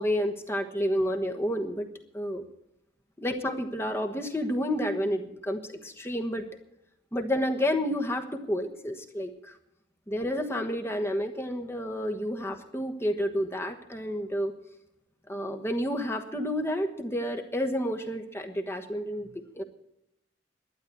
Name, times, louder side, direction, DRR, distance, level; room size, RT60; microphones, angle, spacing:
voice 1, 0.0-1.9 2.1-2.5 3.2-6.4 7.1-9.5 10.1-14.5 15.3-19.6, equal, 15° left, 5 dB, 1.2 m, -30 dB
12.0 x 10.0 x 8.4 m, 0.83 s
head